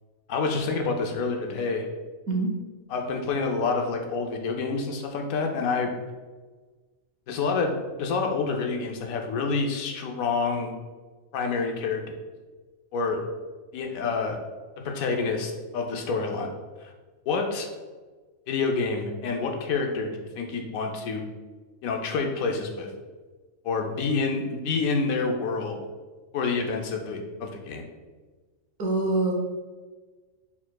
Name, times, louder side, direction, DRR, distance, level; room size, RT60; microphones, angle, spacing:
voice 1, 0.3-1.9 2.9-6.0 7.3-10.7 11.3-12.0 12.9-13.2 13.7-14.4 14.8-16.5 17.3-17.7 18.5-21.3 21.8-22.9 23.6-25.8 26.3-27.8, left 4 dB, 90° left, 3 dB, 1.1 m, -28 dB
voice 2, 28.8-29.3, right 2 dB, 90° right, 1 dB, 1.2 m, -24 dB
4.3 x 4.1 x 2.2 m, 1.3 s
omnidirectional pair, 1.4 m